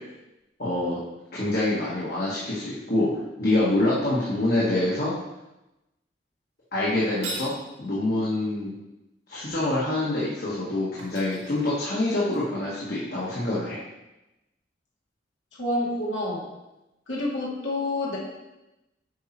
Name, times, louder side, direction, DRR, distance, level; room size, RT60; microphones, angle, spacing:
voice 1, 0.6-1.0 1.3-3.1 3.4-5.1 6.7-7.5 7.8-8.7 9.3-13.8, left 2 dB, 55° left, -8 dB, 1.6 m, -26 dB
sound 1, 7.0-7.6 10.5-10.6 11.0-12.4, right 2 dB, 90° right, 2.4 m, -38 dB
voice 2, 15.6-16.5 17.1-18.2, left 1 dB, 85° left, -5 dB, 2.5 m, -28 dB
8.3 x 4.7 x 4.5 m, 0.95 s
head